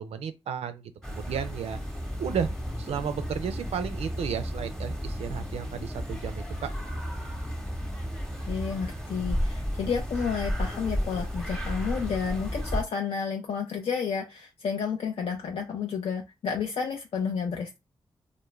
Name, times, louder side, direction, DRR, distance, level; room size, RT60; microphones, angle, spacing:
voice 1, 0.0-1.8 2.2-2.5 2.8-6.7, right 7 dB, 85° right, 0.4 m, -33 dB
sound 1, 1.0-12.8, equal, 5° left, 0.8 m, -33 dB
voice 2, 8.5-17.8, left 6 dB, 70° left, 0.4 m, -31 dB
2.3 x 2.1 x 3.1 m
cardioid pair, 60°, 10 cm